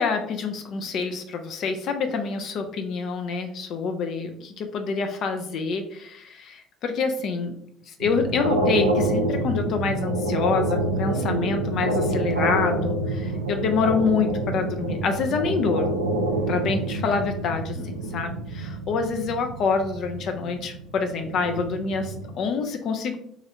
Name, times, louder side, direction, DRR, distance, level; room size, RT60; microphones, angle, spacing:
voice 1, 0.0-7.5 7.9-16.0 16.5-23.2, left 5 dB, 55° left, 5 dB, 0.4 m, -26 dB
sound 1, 8.0-22.3, right 1 dB, 90° right, 0.4 m, -27 dB
3.0 x 2.5 x 2.8 m, 0.67 s
figure-of-eight pair, 60°, 0 cm